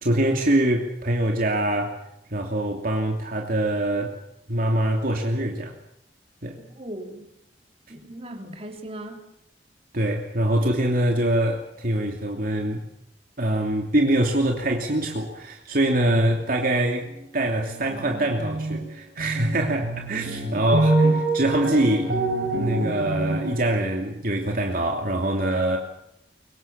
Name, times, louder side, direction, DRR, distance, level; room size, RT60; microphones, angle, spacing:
voice 1, 0.0-2.0 2.3-4.1 4.5-5.7 6.4-6.6 9.9-12.8 13.4-17.1 17.3-22.1 22.6-25.8, right 1 dB, 55° right, 1 dB, 2.9 m, -24 dB
voice 2, 6.6-7.3 7.9-9.2, right 1 dB, 35° right, 4 dB, 3.9 m, -38 dB
sound 1, 17.0-17.2 17.5-18.8 19.2-23.7, right 2 dB, 80° right, 5.0 m, -26 dB
24.5 x 23.5 x 7.4 m, 0.79 s
head